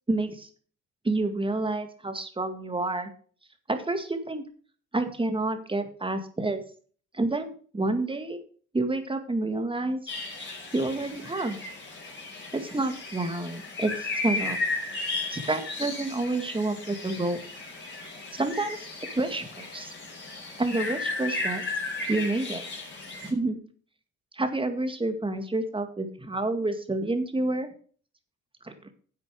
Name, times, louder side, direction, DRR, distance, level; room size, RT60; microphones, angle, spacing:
voice 1, 0.1-0.5 1.0-3.1 3.7-4.4 4.9-6.6 7.1-8.4 8.7-10.0 10.7-11.6 12.5-14.6 15.3-17.4 18.3-18.9 19.2-19.9 20.6-21.6 22.1-22.6 23.2-23.6 24.3-27.7 28.6-28.7, right 2 dB, 15° right, 7 dB, 2.0 m, -29 dB
sound 1, 10.1-23.3, left 3 dB, 40° left, 4.8 m, -35 dB
11.0 x 7.6 x 4.8 m, 0.44 s
cardioid pair, 90°, 30 cm